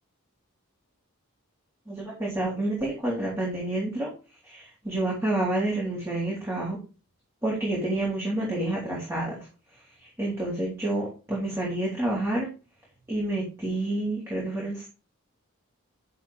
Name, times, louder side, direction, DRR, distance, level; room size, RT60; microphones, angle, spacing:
voice 1, 1.9-4.1 4.5-6.8 7.4-9.4 10.2-12.5 13.1-14.9, right 1 dB, 10° right, -5 dB, 3.6 m, -29 dB
10.5 x 7.6 x 3.6 m, 0.33 s
head